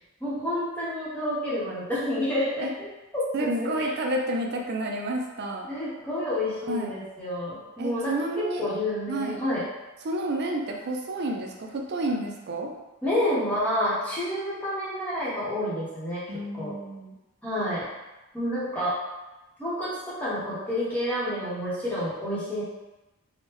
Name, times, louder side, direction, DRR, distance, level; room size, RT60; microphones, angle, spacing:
voice 1, 0.2-2.9 3.1-3.9 5.7-9.7 13.0-16.2 16.5-16.8 17.4-17.9 18.3-19.0 19.6-22.6, left 1 dB, 5° left, -9 dB, 0.9 m, -29 dB
voice 2, 3.3-5.7 6.6-6.9 7.8-8.7 9.1-9.4 10.0-12.7 16.3-17.1, right 1 dB, 50° right, 1 dB, 0.4 m, -30 dB
3.5 x 2.1 x 2.9 m, 1.0 s
head